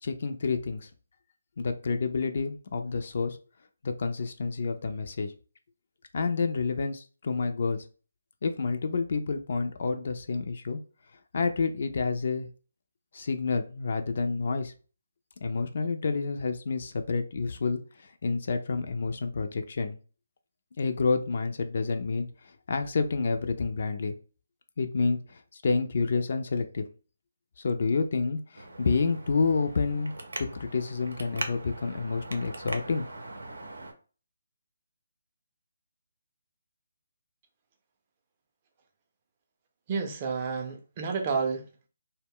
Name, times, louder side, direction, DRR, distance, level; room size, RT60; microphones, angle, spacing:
voice 1, 0.0-0.9 1.6-3.4 3.8-5.3 6.1-7.8 8.4-10.8 11.3-12.5 13.1-14.7 15.4-17.8 18.2-20.0 20.8-22.3 22.7-24.1 24.8-26.9 27.6-30.1 30.4-33.0, left 4 dB, 55° left, 7 dB, 0.4 m, -29 dB
Traffic noise roadway noise, 28.5-33.9, right 2 dB, 80° right, 0.6 m, -41 dB
voice 2, 39.9-41.9, right 5 dB, 30° right, 4 dB, 0.5 m, -30 dB
2.1 x 2.1 x 3.5 m, 0.37 s
figure-of-eight pair, 155°, 0 cm